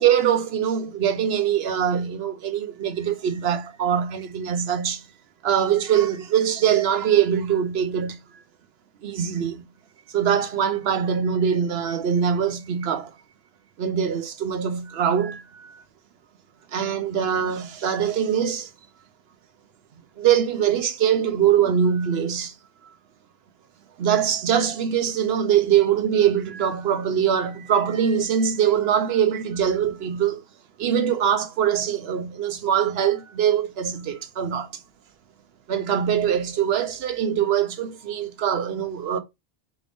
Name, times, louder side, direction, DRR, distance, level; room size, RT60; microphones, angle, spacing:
voice 1, 0.0-5.0 5.4-8.2 9.0-9.6 10.1-13.1 13.8-15.8 16.7-18.7 20.2-22.5 24.0-30.4 30.8-34.7 35.7-39.2, right 8 dB, 75° right, 0.9 m, -23 dB
5.0 x 2.5 x 3.4 m
omnidirectional pair, 1.1 m